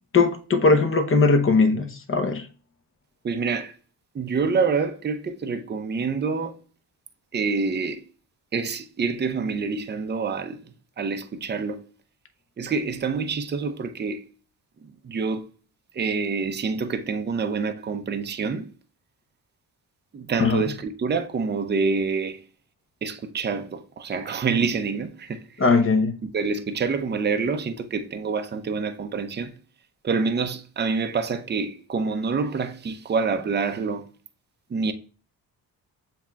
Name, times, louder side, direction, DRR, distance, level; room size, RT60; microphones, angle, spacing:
voice 1, 0.1-2.5 20.4-20.6 25.6-26.2, left 4 dB, 30° left, 0.9 m, -19 dB
voice 2, 3.2-3.7 4.1-6.6 7.3-8.0 8.5-10.6 11.0-11.8 12.6-14.2 15.0-15.5 15.9-18.7 20.1-22.4 23.0-25.4 26.2-29.5 30.0-34.1 34.7-34.9, right 5 dB, 25° right, 0.6 m, -27 dB
7.2 x 2.9 x 2.3 m
supercardioid pair, 65°, 40 cm